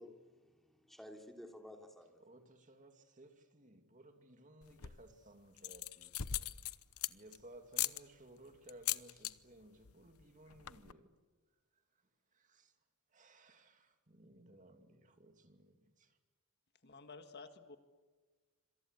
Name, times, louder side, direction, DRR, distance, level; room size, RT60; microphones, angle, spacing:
voice 1, 0.0-2.2, left 1 dB, ahead, 3.1 m, -54 dB
voice 2, 2.2-6.1 7.1-11.2 12.3-12.7 13.1-16.2, right 1 dB, 35° right, 2.4 m, -59 dB
sound 1, 4.6-5.1 5.6-7.4 7.7-8.0 8.7-9.3 9.6-9.9 10.2-10.3 10.5-10.9, left 13 dB, 75° left, 0.9 m, -39 dB
voice 3, 16.8-17.8, left 4 dB, 50° left, 1.8 m, -52 dB
26.5 x 26.5 x 8.3 m
head